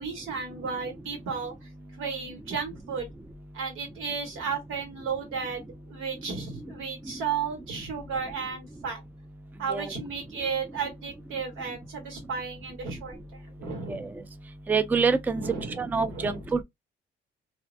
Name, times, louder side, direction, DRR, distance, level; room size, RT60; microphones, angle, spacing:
voice 1, 0.0-1.5 2.0-3.1 3.5-9.0 9.6-14.1 15.3-16.4, right 5 dB, 90° right, 1.4 m, -34 dB
voice 2, 14.7-15.4 15.8-16.6, right 5 dB, 10° right, 0.3 m, -26 dB
2.6 x 2.1 x 2.4 m
cardioid pair, 90°, 20 cm